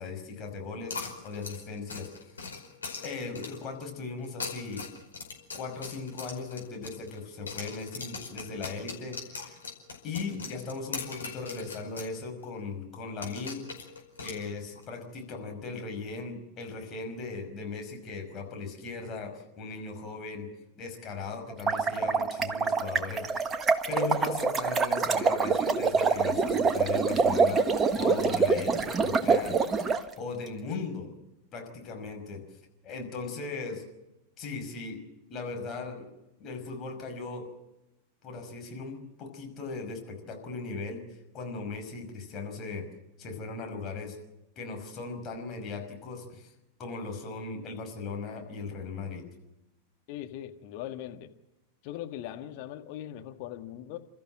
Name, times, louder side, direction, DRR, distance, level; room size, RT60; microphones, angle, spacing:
voice 1, 0.0-2.1 3.0-4.8 5.5-9.6 10.0-13.7 14.2-20.5 20.8-23.6 23.9-29.6 30.2-31.1 31.5-32.4 32.8-33.8 34.4-35.0 35.3-36.1 36.4-37.5 38.2-42.9 43.2-44.2 44.6-46.5 46.8-49.3, left 4 dB, 30° left, 3 dB, 5.7 m, -38 dB
sound 1, 0.9-3.7 4.2-7.2 7.5-12.1 12.4-12.5 13.2-14.8, left 4 dB, 75° left, 5.0 m, -40 dB
sound 2, 21.5-30.0, right 4 dB, 20° right, 1.4 m, -26 dB
voice 2, 50.1-51.3 51.8-54.0, left 12 dB, 45° left, 6 dB, 1.7 m, -40 dB
29.5 x 14.0 x 7.6 m, 0.95 s
figure-of-eight pair, 90°, 0 cm